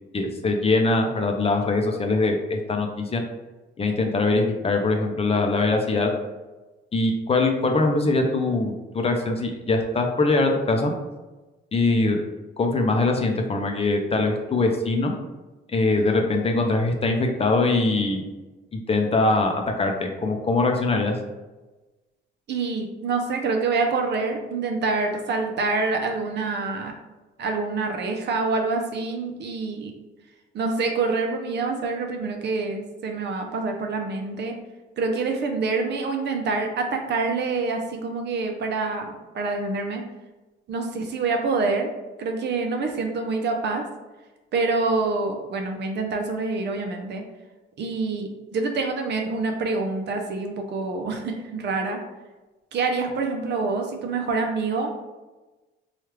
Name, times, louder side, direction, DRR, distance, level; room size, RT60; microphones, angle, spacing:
voice 1, 0.1-3.2 3.8-6.1 6.9-10.9 11.7-12.2 12.6-15.1 15.7-18.2 18.7-21.1, left 3 dB, 30° left, 3 dB, 0.5 m, -22 dB
voice 2, 22.5-27.0 27.4-29.9 30.5-34.5 35.0-40.0 40.7-41.9 42.2-43.8 44.5-47.2 47.8-52.0 52.7-54.9, right 3 dB, 60° right, 3 dB, 0.6 m, -26 dB
3.1 x 2.4 x 3.1 m, 1.1 s
cardioid pair, 90°, 20 cm